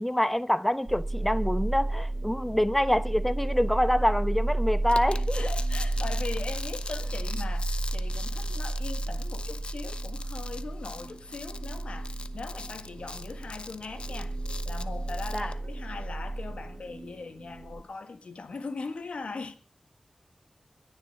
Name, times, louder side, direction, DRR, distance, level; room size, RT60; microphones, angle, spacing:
voice 1, 0.0-5.5 15.3-15.5, left 1 dB, 10° left, 0.9 m, -26 dB
sound 1, 0.9-17.8, right 2 dB, 55° right, 2.5 m, -32 dB
sound 2, 4.9-15.5, left 3 dB, 60° left, 0.9 m, -42 dB
voice 2, 5.3-14.4 14.6-19.6, left 4 dB, 75° left, 1.8 m, -40 dB
21.0 x 7.4 x 7.2 m
wide cardioid pair, 60°, 2 cm